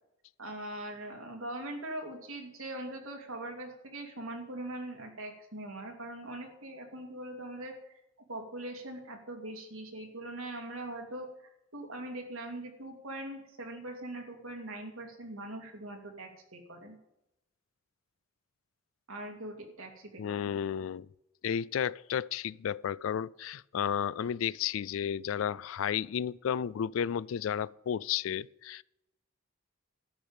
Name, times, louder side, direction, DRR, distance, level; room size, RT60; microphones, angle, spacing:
voice 1, 0.4-7.9 8.3-11.3 11.7-17.0 19.1-20.6, right 1 dB, 90° right, 2.4 m, -41 dB
voice 2, 20.2-21.1 21.4-28.8, left 8 dB, 75° left, 0.3 m, -32 dB
12.5 x 5.0 x 8.8 m
head